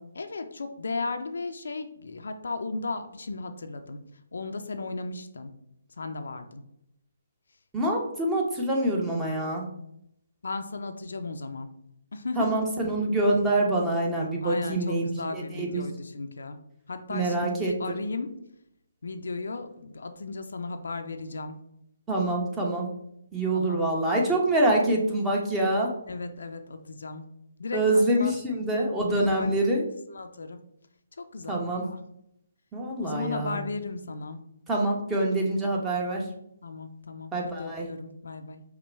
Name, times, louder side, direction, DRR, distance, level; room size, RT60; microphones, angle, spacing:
voice 1, 0.1-4.0 4.3-5.5 6.0-6.6 10.4-11.7 12.1-12.6 14.4-16.6 16.9-18.3 19.0-21.6 23.5-23.8 26.1-27.2 27.6-28.3 29.1-29.5 30.1-30.6 31.2-32.0 33.0-34.4 36.6-37.3 37.6-38.6, left 3 dB, 70° left, 7 dB, 0.5 m, -35 dB
voice 2, 7.7-9.7 12.4-15.8 17.1-18.0 22.1-22.9 23.3-25.9 27.7-29.8 31.5-31.8 32.7-33.6 34.7-36.2 37.3-37.9, right 1 dB, 10° right, -1 dB, 1.0 m, -25 dB
5.4 x 2.2 x 4.4 m, 0.77 s
figure-of-eight pair, 140°, 0 cm